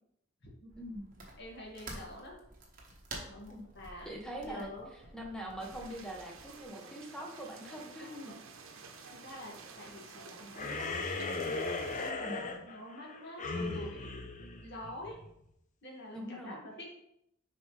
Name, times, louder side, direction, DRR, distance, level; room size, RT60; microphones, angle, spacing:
sound 1, 0.7-6.7, right 2 dB, 45° right, 1.3 m, -50 dB
voice 1, 0.8-1.1 3.5-3.7 4.0-4.7 5.1-8.1 12.2-12.6 16.1-16.6, equal, 5° left, 0 dB, 1.0 m, -43 dB
voice 2, 1.4-2.4 3.3-4.1 4.4-4.9 8.1-8.4 8.7-11.6 12.0-14.3 14.6-15.2 15.8-16.9, left 1 dB, 55° left, -3 dB, 2.0 m, -47 dB
sound 2, 5.6-12.1, right 4 dB, 85° right, 0.8 m, -51 dB
sound 3, 10.5-15.3, left 3 dB, 40° left, 0.6 m, -37 dB
6.9 x 4.9 x 3.3 m, 0.77 s
head